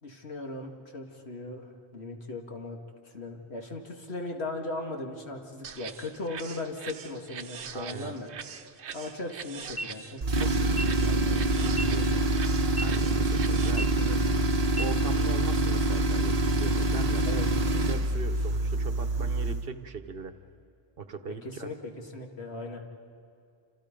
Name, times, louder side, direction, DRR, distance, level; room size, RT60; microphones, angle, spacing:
voice 1, 0.0-2.8 3.0-8.3 8.9-10.5 11.0-12.2 17.2-17.5 21.4-22.8, left 2 dB, 70° left, 2 dB, 2.2 m, -38 dB
sound 1, 5.6-13.7, right 7 dB, 90° right, 1.2 m, -43 dB
voice 2, 7.7-8.1 12.8-14.3 14.8-17.3 17.8-20.3 21.0-21.7, right 5 dB, 60° right, 10 dB, 1.1 m, -39 dB
sound 2, 9.6-9.9 10.6-10.8 11.6-11.9 12.6-12.8 13.6-13.9 14.6-14.8, equal, 30° left, 0.9 m, -34 dB
Tools, 10.2-19.7, right 2 dB, 40° right, 1.0 m, -26 dB
28.5 x 26.5 x 5.2 m, 2.4 s
omnidirectional pair, 1.1 m